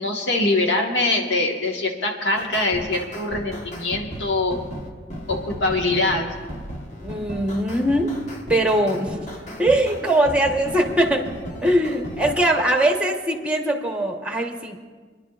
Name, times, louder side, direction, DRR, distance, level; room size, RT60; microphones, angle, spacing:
voice 1, 0.0-4.6 5.3-6.3, left 2 dB, 90° left, 2 dB, 1.4 m, -23 dB
sound 1, 2.4-12.5, equal, 40° left, 1.3 m, -35 dB
voice 2, 7.0-8.2 8.5-9.3 9.6-11.3 11.6-14.8, right 1 dB, 5° right, 3 dB, 1.1 m, -21 dB
29.5 x 11.0 x 2.4 m, 1.5 s
head